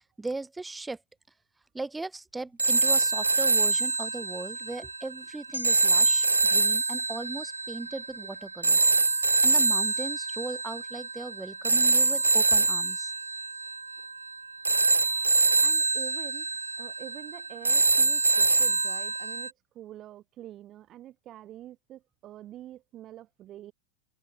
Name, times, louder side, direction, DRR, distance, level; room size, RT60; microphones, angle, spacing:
voice 1, 0.2-1.0 1.7-8.8 9.4-13.1, right 3 dB, 10° right, 1.3 m, -38 dB
sound 1, 2.6-19.5, right 3 dB, 80° right, 0.4 m, -25 dB
sound 2, 5.5-10.0 10.4-10.6, equal, 90° left, 2.3 m, -47 dB
voice 2, 15.6-16.5 16.8-23.7, right 13 dB, 30° right, 3.4 m, -46 dB
figure-of-eight pair, 90°, 0 cm